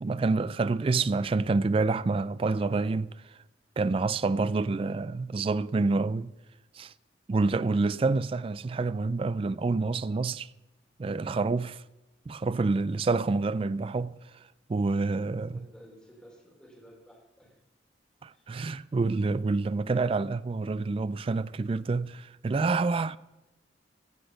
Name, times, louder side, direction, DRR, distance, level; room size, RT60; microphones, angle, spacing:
voice 1, 0.0-3.2 3.8-6.3 6.7-6.9 7.3-10.5 11.0-11.8 12.3-14.2 14.7-15.6 18.2-23.2, right 3 dB, 30° right, 0.3 m, -27 dB
voice 2, 15.5-17.6 18.3-18.5, equal, 5° left, 3.9 m, -54 dB
15.5 x 6.5 x 6.7 m
head